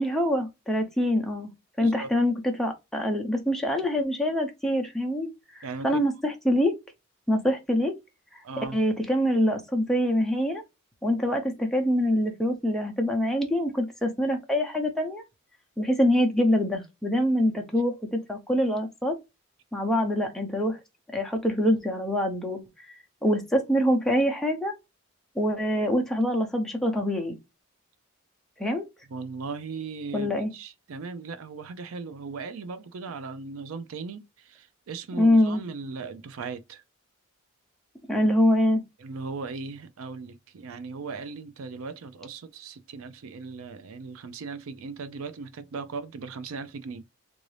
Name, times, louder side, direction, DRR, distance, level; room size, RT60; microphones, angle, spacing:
voice 1, 0.0-1.5 1.8-5.3 5.5-6.7 7.3-7.9 8.7-10.6 11.0-15.2 15.8-19.1 19.7-20.8 21.1-22.6 23.2-24.7 25.4-27.4 28.6-28.8 30.1-30.5 35.1-35.6 38.1-38.8, equal, ahead, 0.6 m, -25 dB
voice 2, 1.8-2.1 5.6-6.0 8.4-8.8 29.1-36.8 39.0-47.0, right 4 dB, 75° right, 0.4 m, -38 dB
3.6 x 2.6 x 3.2 m
head